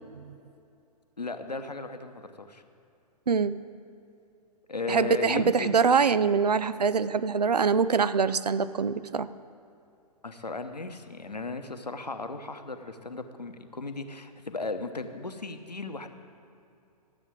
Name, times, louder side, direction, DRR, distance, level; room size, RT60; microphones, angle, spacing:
voice 1, 1.2-2.6 4.7-5.9 10.2-16.1, left 3 dB, 85° left, 8 dB, 1.0 m, -36 dB
voice 2, 3.3-3.6 4.9-9.3, right 6 dB, 75° right, 15 dB, 0.5 m, -24 dB
12.5 x 7.9 x 7.7 m, 2.6 s
figure-of-eight pair, 115°, 21 cm